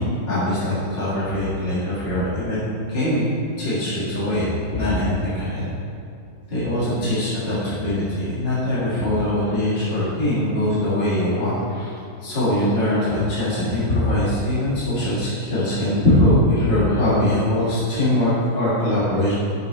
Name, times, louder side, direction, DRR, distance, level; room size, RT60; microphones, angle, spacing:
voice 1, 0.0-3.3 3.6-5.7 6.5-19.3, left 1 dB, 40° left, -11 dB, 2.2 m, -22 dB
8.6 x 6.3 x 3.2 m, 2.4 s
omnidirectional pair, 1.6 m